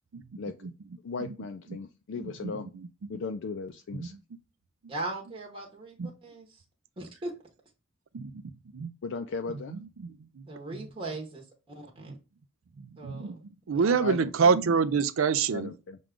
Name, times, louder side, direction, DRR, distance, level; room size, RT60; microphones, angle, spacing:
voice 1, 0.4-0.7 1.0-2.7 3.1-4.1 9.0-9.8 14.0-14.5 15.5-16.0, left 4 dB, 65° left, 0.4 m, -37 dB
voice 2, 2.2-2.9 4.0-4.2 6.0-6.1 8.1-8.4 8.7-8.9 9.7-10.4 12.1-12.2 12.8-13.4 13.7-15.7, right 5 dB, 80° right, 0.4 m, -27 dB
voice 3, 4.9-6.6 7.0-7.3 10.4-12.2 13.0-13.4 13.7-14.2, right 2 dB, 25° right, 0.9 m, -39 dB
6.1 x 2.3 x 3.6 m
head